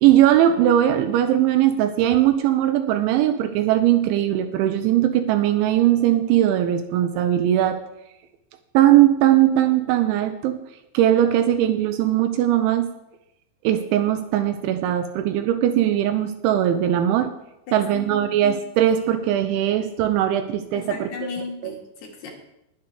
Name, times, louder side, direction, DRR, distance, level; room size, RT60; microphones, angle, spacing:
voice 1, 0.0-7.8 8.7-10.6 10.9-12.9 13.6-17.3 17.7-21.1 21.6-21.7, right 12 dB, 85° right, 8 dB, 2.8 m, -19 dB
voice 2, 17.7-18.3 20.7-22.3, left 5 dB, 60° left, 0 dB, 3.6 m, -35 dB
20.0 x 8.2 x 3.4 m, 0.85 s
omnidirectional pair, 5.9 m